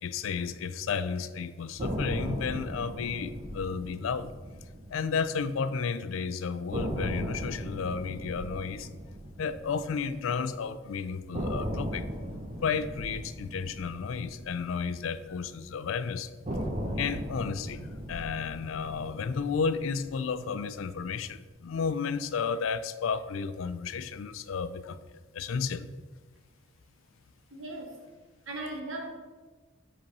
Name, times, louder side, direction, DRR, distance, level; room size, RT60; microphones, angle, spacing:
voice 1, 0.0-4.3 4.9-8.9 9.4-12.1 12.6-16.3 17.0-25.9, left 5 dB, 85° left, 13 dB, 0.4 m, -32 dB
sound 1, 1.8-5.9 6.1-6.2 6.7-10.8 11.3-15.7 16.4-20.8, equal, 35° right, 0.8 m, -37 dB
voice 2, 27.5-28.0 28.5-29.1, right 2 dB, 80° right, 3 dB, 1.1 m, -37 dB
5.3 x 4.2 x 5.2 m, 1.3 s
head